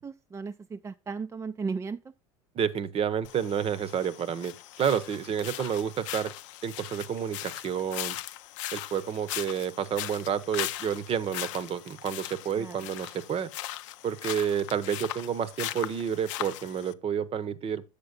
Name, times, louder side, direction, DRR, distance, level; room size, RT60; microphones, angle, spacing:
voice 1, 0.0-2.0 12.5-12.8, right 5 dB, 20° right, 0.4 m, -35 dB
voice 2, 2.5-6.3 6.6-8.2 8.7-13.5 14.0-17.8, right 8 dB, 35° right, 0.8 m, -30 dB
sound 1, 3.2-16.9, left 15 dB, 75° left, 0.5 m, -39 dB
7.7 x 6.7 x 3.8 m
hypercardioid pair, 90°, 16 cm